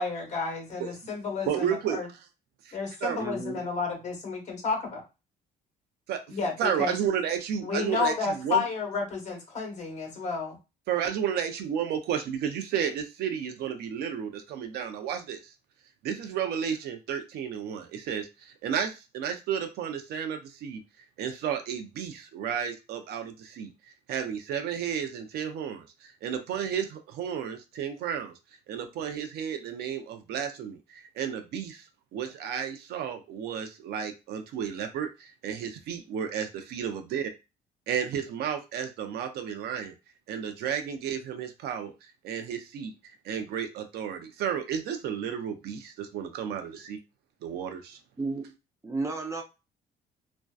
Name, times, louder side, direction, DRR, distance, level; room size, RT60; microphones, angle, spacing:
voice 1, 0.0-2.1 2.7-5.0 6.3-6.9 7.6-10.6, left 4 dB, 45° left, 2 dB, 1.0 m, -31 dB
voice 2, 1.4-2.0 2.7-3.2 6.1-6.2 6.6-8.6 10.1-10.2 10.9-15.5 16.0-20.8 21.2-23.7 24.1-28.3 28.7-31.9 32.1-37.3 37.9-39.9 40.3-41.9 42.2-42.9 43.2-47.0 47.4-48.0, right 8 dB, 75° right, 7 dB, 0.5 m, -32 dB
voice 3, 3.2-3.6 48.2-48.5 48.8-49.4, right 3 dB, 15° right, 3 dB, 0.5 m, -32 dB
2.5 x 2.1 x 2.3 m, 0.27 s
cardioid pair, 110°, 17 cm